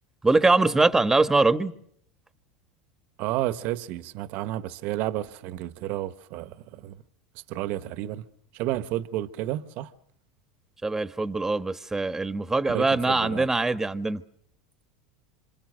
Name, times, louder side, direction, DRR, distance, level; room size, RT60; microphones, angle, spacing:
voice 1, 0.2-1.7 10.8-14.2, right 3 dB, 10° right, 1.3 m, -23 dB
voice 2, 3.2-7.0 7.5-8.3 8.5-9.9 12.7-13.5, right 14 dB, 60° right, 1.2 m, -31 dB
27.0 x 26.5 x 6.5 m
hypercardioid pair, 105°, 3 cm